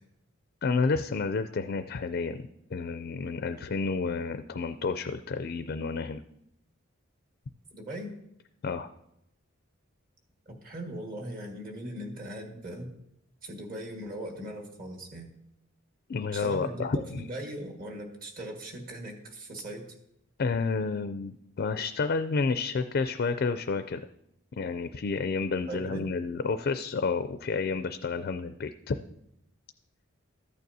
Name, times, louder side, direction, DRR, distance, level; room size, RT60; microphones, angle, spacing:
voice 1, 0.6-6.2 8.6-8.9 16.1-17.2 20.4-24.0 24.6-29.0, left 4 dB, 50° left, 9 dB, 0.4 m, -30 dB
voice 2, 7.7-8.1 10.4-13.0 13.4-15.3 16.3-19.9 25.7-26.1, right 1 dB, 45° right, 1 dB, 1.7 m, -39 dB
14.0 x 9.1 x 2.7 m, 0.79 s
head